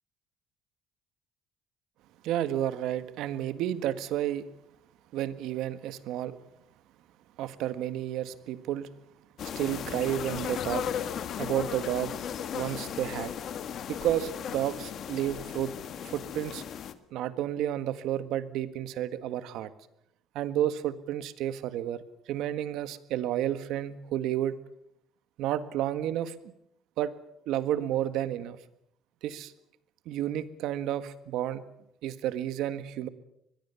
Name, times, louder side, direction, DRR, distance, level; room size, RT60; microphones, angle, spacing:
voice 1, 2.2-4.5 5.1-6.4 7.4-8.9 9.6-10.8 11.4-12.2 12.5-13.3 13.9-15.7 16.0-16.6 17.1-19.7 20.4-24.6 25.4-26.5 27.0-27.1 27.5-28.6 29.2-29.5 30.1-31.6 32.0-33.1, right 12 dB, 80° right, 12 dB, 1.6 m, -31 dB
sound 1, 9.4-16.9, left 8 dB, 55° left, 1.6 m, -36 dB
24.0 x 21.5 x 7.1 m, 0.77 s
cardioid pair, 130°, 0 cm